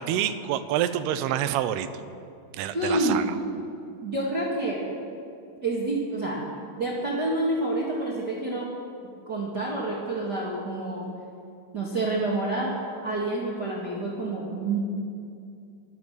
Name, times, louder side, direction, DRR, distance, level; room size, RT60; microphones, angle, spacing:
voice 1, 0.0-1.9 2.5-3.3, right 11 dB, 85° right, 12 dB, 2.7 m, -27 dB
voice 2, 2.7-3.2 4.0-4.8 5.6-6.4 6.8-8.7 9.3-11.0 11.7-12.7 13.0-14.8, right 2 dB, 40° right, -4 dB, 1.7 m, -28 dB
25.5 x 8.6 x 6.6 m, 2.4 s
omnidirectional pair, 4.6 m